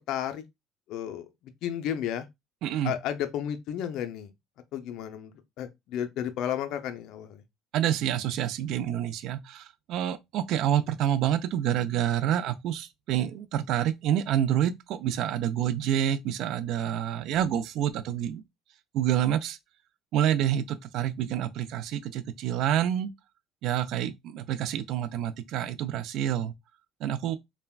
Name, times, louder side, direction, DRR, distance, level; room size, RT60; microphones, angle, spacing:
voice 1, 0.1-0.4 0.9-1.2 1.6-2.2 2.8-4.3 4.7-7.4, left 10 dB, 65° left, 0.4 m, -32 dB
voice 2, 2.6-2.9 7.7-18.4 18.9-19.6 20.1-23.1 23.6-26.5 27.0-27.4, right 10 dB, 65° right, 0.3 m, -28 dB
3.3 x 2.1 x 2.2 m
cardioid pair, 110°, 0 cm